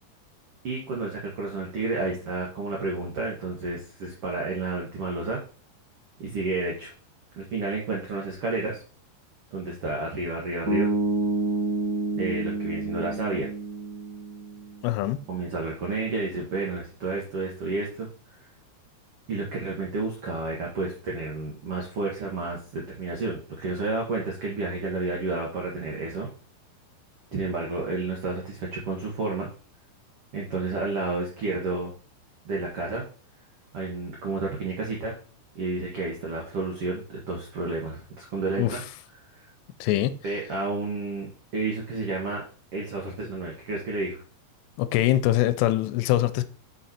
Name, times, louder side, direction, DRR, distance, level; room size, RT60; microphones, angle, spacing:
voice 1, 0.6-5.4 6.2-6.9 7.4-8.8 9.5-10.9 12.1-13.5 15.3-18.1 19.3-26.3 27.3-29.5 30.3-31.9 32.4-33.0 33.7-35.1 35.5-38.8 40.2-42.4 42.7-44.2, right 3 dB, 85° right, 1.2 m, -31 dB
sound 1, 10.7-14.8, right 2 dB, 55° right, 1.0 m, -28 dB
voice 2, 14.8-15.2 38.6-38.8 39.8-40.1 44.8-46.4, left 14 dB, 85° left, 2.7 m, -23 dB
6.1 x 5.2 x 4.3 m
omnidirectional pair, 4.9 m